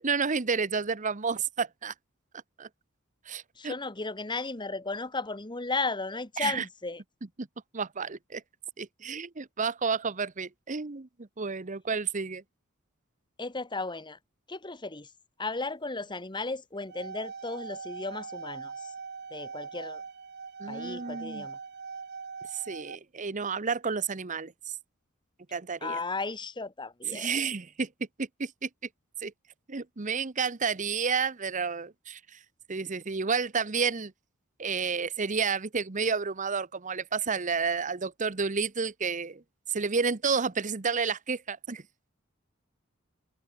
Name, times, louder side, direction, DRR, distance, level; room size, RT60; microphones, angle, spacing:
voice 1, 0.0-1.9 2.6-2.7 3.3-3.7 6.4-6.6 7.4-7.5 7.7-8.4 8.8-12.4 20.6-21.5 22.5-24.7 25.5-26.0 27.1-27.9 28.2-28.7 29.2-29.3 29.7-32.4 32.7-34.1 34.6-39.4 39.7-41.8, right 5 dB, 40° right, 0.9 m, -31 dB
voice 2, 3.6-7.0 13.4-14.2 14.5-15.1 15.4-18.9 19.3-20.0 20.7-21.6 25.8-27.4, left 3 dB, 25° left, 1.7 m, -35 dB
sound 1, 16.7-23.0, right 5 dB, 55° right, 1.3 m, -41 dB
head